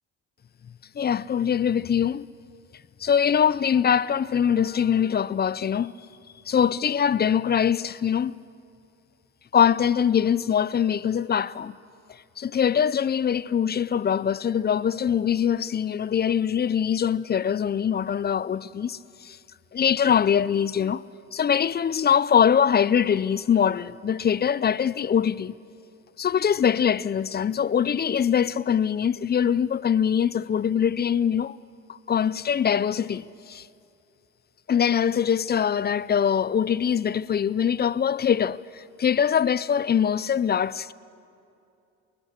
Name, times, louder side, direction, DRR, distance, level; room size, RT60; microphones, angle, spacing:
voice 1, 1.0-2.3 3.0-5.9 6.5-8.4 9.5-11.7 12.4-19.4 19.7-21.0 21.3-25.5 26.2-31.6 31.9-33.7 34.7-40.9, left 8 dB, 35° left, 0.5 m, -23 dB
25.5 x 20.0 x 6.6 m
cardioid pair, 90°, 30 cm